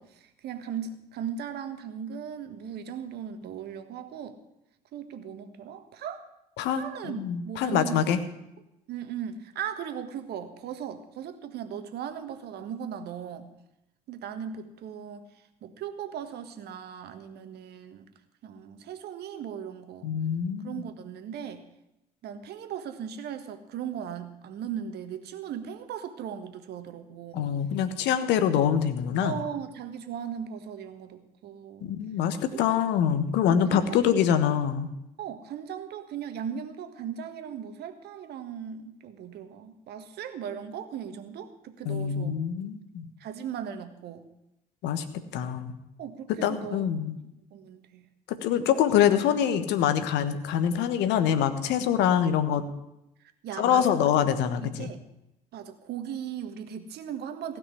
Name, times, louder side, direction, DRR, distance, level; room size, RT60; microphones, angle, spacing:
voice 1, 0.0-4.4 4.9-6.3 6.7-8.1 8.9-13.5 14.1-15.2 15.6-18.0 18.4-20.1 20.6-21.6 22.2-27.5 29.2-31.9 32.5-32.6 33.4-34.0 35.2-42.4 43.2-44.3 46.0-46.8 47.5-48.1 48.6-48.7 53.4-54.1 54.6-55.0 55.5-57.6, right 8 dB, 55° right, 9 dB, 1.6 m, -38 dB
voice 2, 6.6-8.2 20.0-20.8 27.3-29.4 31.8-34.9 41.8-43.1 44.8-45.0 45.3-45.8 46.3-47.2 48.3-52.7 53.6-54.9, left 9 dB, 65° left, 11 dB, 1.3 m, -25 dB
16.0 x 6.1 x 9.8 m, 0.85 s
hypercardioid pair, 60°, 20 cm